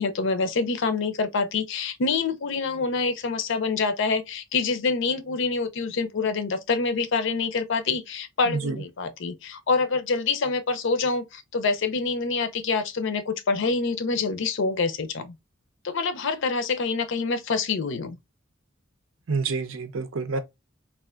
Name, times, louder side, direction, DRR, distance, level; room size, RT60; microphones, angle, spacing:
voice 1, 0.0-15.3 15.8-18.2, left 4 dB, 65° left, 0.5 m, -26 dB
voice 2, 8.5-8.8 19.3-20.4, right 4 dB, 75° right, 0.6 m, -28 dB
3.3 x 2.4 x 2.4 m
head